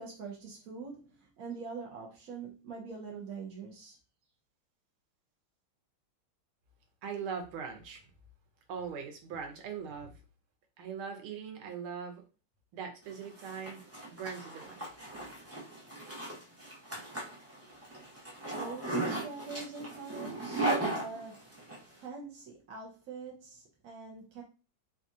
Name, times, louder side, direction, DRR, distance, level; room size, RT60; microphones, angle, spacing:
voice 1, 0.0-4.0 18.5-21.5 22.0-24.4, right 4 dB, 70° right, 0.8 m, -44 dB
voice 2, 7.0-8.0 8.7-10.2 10.8-12.2 12.7-13.8 14.1-14.8, right 6 dB, 85° right, 1.7 m, -40 dB
Zipper (clothing), 13.1-21.8, right 2 dB, 20° right, 0.4 m, -37 dB
4.7 x 2.4 x 2.6 m
omnidirectional pair, 2.3 m